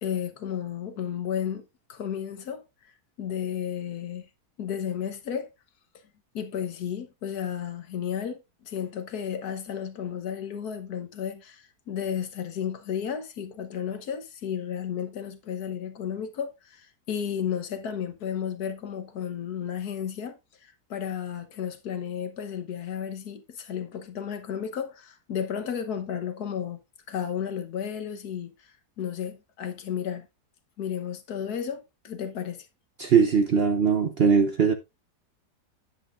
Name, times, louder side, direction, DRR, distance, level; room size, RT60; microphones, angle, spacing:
voice 1, 0.0-2.6 3.2-4.3 4.6-5.5 6.3-26.8 27.1-30.3 30.8-32.7, left 8 dB, 70° left, 1.6 m, -33 dB
voice 2, 33.0-34.7, right 6 dB, 50° right, 0.7 m, -20 dB
9.9 x 8.2 x 2.5 m
omnidirectional pair, 1.8 m